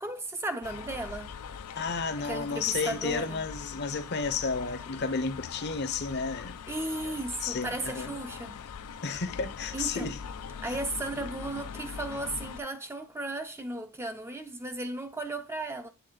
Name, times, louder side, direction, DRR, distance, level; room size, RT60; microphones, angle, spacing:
voice 1, 0.0-1.3 2.2-3.4 6.7-8.6 9.7-10.1 10.6-15.9, right 2 dB, 10° right, 0.4 m, -35 dB
sound 1, 0.6-12.6, left 6 dB, 90° left, 0.4 m, -42 dB
voice 2, 1.8-6.6 7.0-7.1 7.4-8.1 9.0-10.2 10.7-10.8, left 4 dB, 50° left, 0.6 m, -32 dB
8.3 x 3.5 x 3.8 m
head